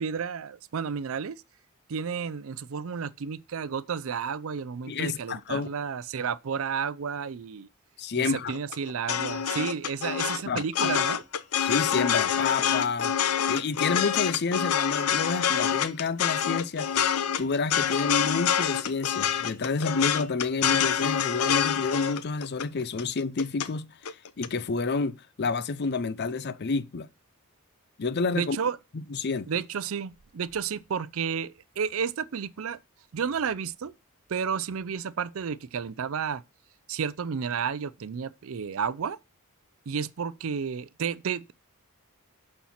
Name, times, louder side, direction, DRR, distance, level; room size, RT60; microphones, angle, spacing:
voice 1, 0.0-1.4 1.9-7.7 8.2-11.2 28.3-28.8 29.5-32.8 33.1-33.9 34.3-36.4 36.9-39.2 39.9-41.5, right 6 dB, 65° right, 0.5 m, -31 dB
voice 2, 4.9-5.7 8.0-8.5 10.5-10.9 11.6-13.1 13.5-16.9 17.4-23.9 24.4-27.1 28.0-28.6 28.9-29.5, left 4 dB, 50° left, 0.5 m, -29 dB
sound 1, 8.5-23.7 24.0-24.5, left 9 dB, 85° left, 0.7 m, -26 dB
11.5 x 4.5 x 4.3 m
head